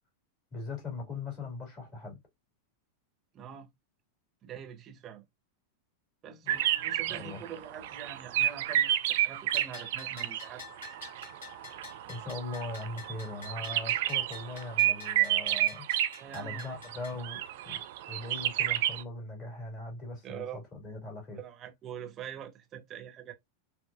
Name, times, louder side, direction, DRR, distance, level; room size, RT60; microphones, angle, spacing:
voice 1, 0.5-2.2 6.4-7.4 12.1-15.9 16.3-17.8 18.1-21.4, left 2 dB, 30° left, 1.9 m, -40 dB
voice 2, 3.3-3.7 4.4-5.2 6.2-10.6 16.2-16.8 20.2-20.6 21.3-23.3, right 9 dB, 30° right, 1.0 m, -44 dB
sound 1, 6.5-10.5 10.8-16.2 16.5-17.0 17.2-19.0, right 13 dB, 55° right, 0.3 m, -30 dB
Bell, 9.5-17.2, left 5 dB, 60° left, 1.8 m, -49 dB
4.1 x 2.1 x 2.4 m
figure-of-eight pair, 90°, 0 cm